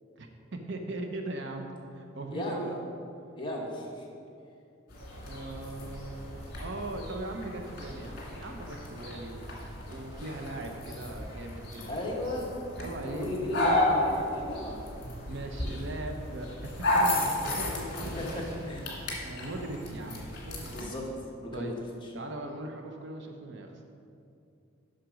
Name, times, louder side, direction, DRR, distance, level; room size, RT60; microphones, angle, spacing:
voice 1, 0.2-2.8 5.3-9.5 9.9-12.3 12.8-13.3 15.3-18.4 19.2-20.7 21.5-21.7 22.1-23.7, right 2 dB, 60° right, 3 dB, 0.8 m, -39 dB
voice 2, 2.3-2.7 3.3-4.1 11.9-12.5 13.0-14.9 18.0-18.8 20.7-21.1 21.4-22.1, left 1 dB, 25° left, -2 dB, 1.3 m, -35 dB
sound 1, 4.9-20.8, left 1 dB, 50° left, 1.9 m, -33 dB
7.7 x 6.0 x 5.1 m, 2.6 s
head